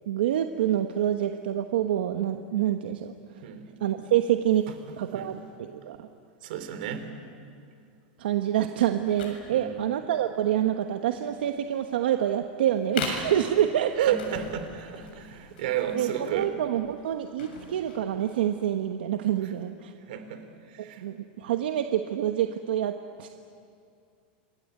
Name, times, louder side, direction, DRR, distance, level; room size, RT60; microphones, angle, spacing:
voice 1, 0.1-3.1 3.8-4.7 5.0-6.1 8.2-14.2 15.9-19.9 21.0-22.9 23.2-23.3, right 11 dB, 90° right, 6 dB, 1.2 m, -26 dB
voice 2, 6.4-7.1 9.5-9.8 14.0-16.5 19.4-19.5 20.0-21.0, right 9 dB, 70° right, 9 dB, 3.3 m, -34 dB
sound 1, 9.0-18.5, left 4 dB, 85° left, 7.5 m, -40 dB
27.0 x 21.5 x 9.0 m, 2.4 s
supercardioid pair, 160°, 5 cm